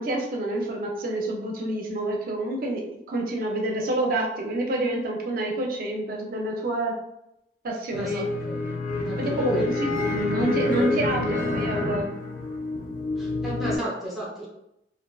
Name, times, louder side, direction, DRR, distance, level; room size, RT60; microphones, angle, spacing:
voice 1, 0.0-6.9 7.6-8.2 9.2-12.2, right 1 dB, 50° right, 0 dB, 0.4 m, -28 dB
sound 1, 7.9-13.8, left 2 dB, 50° left, 0.4 m, -28 dB
voice 2, 7.9-8.6 9.0-9.7 13.2-14.5, right 1 dB, ahead, -6 dB, 0.7 m, -32 dB
2.5 x 2.4 x 2.2 m, 0.83 s
head